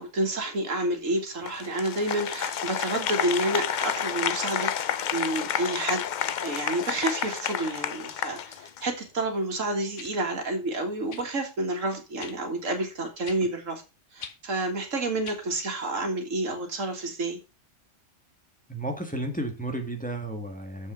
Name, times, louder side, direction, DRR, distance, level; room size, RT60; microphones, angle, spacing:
voice 1, 0.0-4.8 5.1-6.1 6.4-13.8 14.1-17.4, right 2 dB, 80° right, 4 dB, 2.2 m, -29 dB
Applause, 1.5-9.0, left 8 dB, 55° left, 0.5 m, -30 dB
sound 1, 10.0-10.1 11.1-11.3 12.2-12.4 13.2-13.4 14.2-14.4 15.2-15.4 16.4-16.5, left 6 dB, 70° left, 1.4 m, -42 dB
voice 2, 18.7-20.9, right 1 dB, 5° left, 3 dB, 1.6 m, -33 dB
7.3 x 5.5 x 5.9 m, 0.29 s
omnidirectional pair, 1.3 m